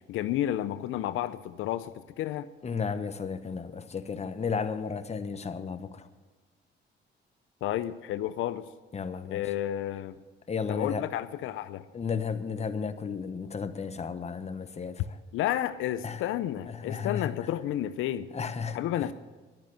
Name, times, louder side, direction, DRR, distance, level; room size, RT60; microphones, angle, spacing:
voice 1, 0.1-2.5 7.6-8.7 9.3-10.2 10.7-11.9 15.3-18.3 18.7-19.1, left 12 dB, 85° left, 0.5 m, -31 dB
voice 2, 2.6-6.1 8.9-9.5 10.5-11.0 11.9-15.2 16.0-16.2 16.7-17.3 18.3-19.1, left 5 dB, 35° left, 1.0 m, -34 dB
11.0 x 10.5 x 7.6 m
cardioid pair, 90°, 20 cm